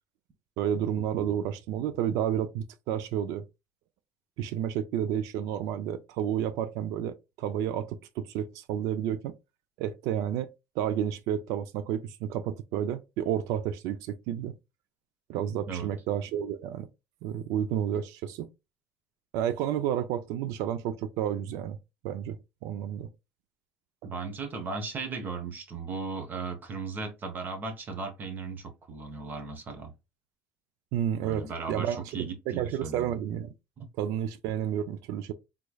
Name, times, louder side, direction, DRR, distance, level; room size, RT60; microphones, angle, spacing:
voice 1, 0.6-3.4 4.4-9.3 9.8-10.5 10.8-14.6 15.3-16.9 17.2-18.5 19.3-21.8 22.0-22.4 22.6-23.1 30.9-32.0 32.5-33.5 34.0-35.3, right 10 dB, 80° right, 0.4 m, -31 dB
voice 2, 24.0-29.9 31.2-33.1 33.8-33.9, right 4 dB, 35° right, 0.9 m, -36 dB
3.6 x 3.1 x 2.3 m
cardioid pair, 120°, 6 cm